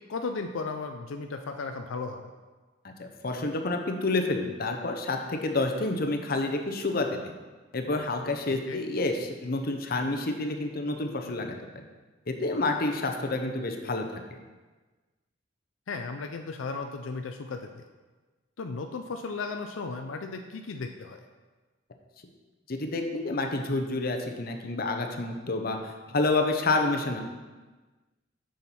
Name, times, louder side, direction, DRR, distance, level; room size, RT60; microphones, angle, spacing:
voice 1, 0.0-2.3 8.7-8.8 15.9-17.7 18.6-21.2, left 4 dB, 85° left, 5 dB, 0.5 m, -35 dB
voice 2, 2.8-7.3 7.7-11.8 12.3-14.4 22.7-25.8 26.1-27.2, left 2 dB, 50° left, 4 dB, 0.8 m, -29 dB
6.9 x 6.4 x 4.3 m, 1.3 s
head